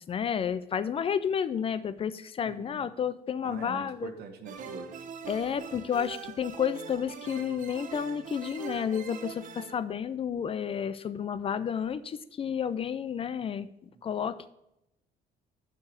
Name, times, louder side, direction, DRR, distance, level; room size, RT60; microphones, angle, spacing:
voice 1, 0.0-4.1 5.3-14.5, left 7 dB, 35° left, 14 dB, 0.4 m, -31 dB
voice 2, 2.4-2.9 3.4-4.9 13.9-14.3, right 6 dB, 70° right, 6 dB, 1.2 m, -44 dB
sound 1, 4.5-9.8, right 6 dB, 50° right, 0.8 m, -42 dB
6.9 x 4.8 x 6.4 m, 0.86 s
cardioid pair, 110°, 17 cm